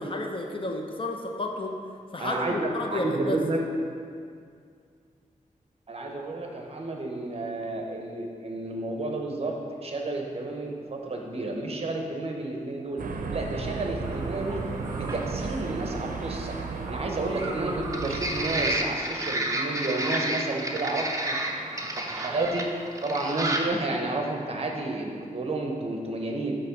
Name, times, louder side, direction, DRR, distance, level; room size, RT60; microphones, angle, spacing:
voice 1, 0.0-1.7 2.1-3.4, left 2 dB, 40° left, 2 dB, 0.6 m, -31 dB
voice 2, 2.2-3.6 5.9-13.0 13.3-14.6 14.9-16.6 16.9-21.4 21.9-26.6, right 2 dB, 45° right, 1 dB, 0.8 m, -31 dB
sound 1, 13.0-18.8, right 4 dB, 85° right, 0.5 m, -34 dB
sound 2, 14.0-23.7, right 1 dB, 25° right, 0.6 m, -32 dB
8.1 x 3.1 x 5.9 m, 2.2 s
wide cardioid pair, 120°, 14 cm